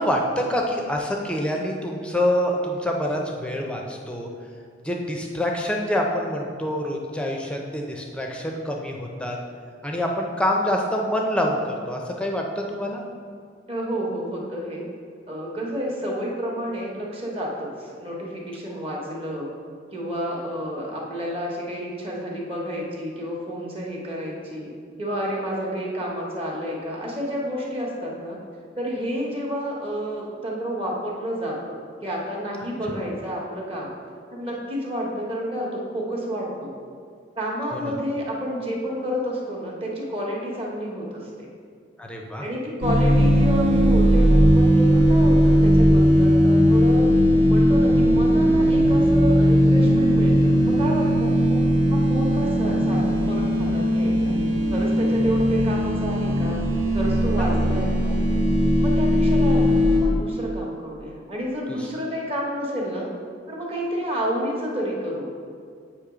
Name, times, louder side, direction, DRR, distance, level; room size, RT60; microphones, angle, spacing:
voice 1, 0.0-4.3 4.8-9.4 9.8-13.0 37.7-37.9 42.0-42.4 57.3-57.4, equal, 5° left, 0 dB, 0.5 m, -26 dB
voice 2, 13.7-14.9 15.3-19.5 19.9-24.7 25.0-28.4 28.7-33.9 34.3-36.7 37.4-41.5 42.4-47.1 47.4-51.6 51.9-54.3 54.7-56.6 56.9-58.2 58.8-63.1 63.5-65.3, equal, 30° right, -3 dB, 1.1 m, -30 dB
sound 1, 42.8-60.0, equal, 85° right, 1.4 m, -18 dB
8.1 x 3.1 x 4.9 m, 2.2 s
head